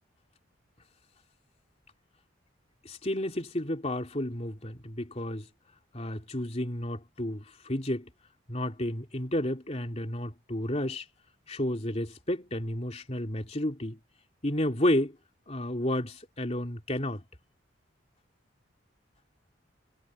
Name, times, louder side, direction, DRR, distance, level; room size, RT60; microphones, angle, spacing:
voice 1, 2.8-5.5 5.9-8.1 8.5-11.1 11.5-14.0 14.4-15.2 15.5-17.2, left 1 dB, 35° left, 3.0 m, -31 dB
head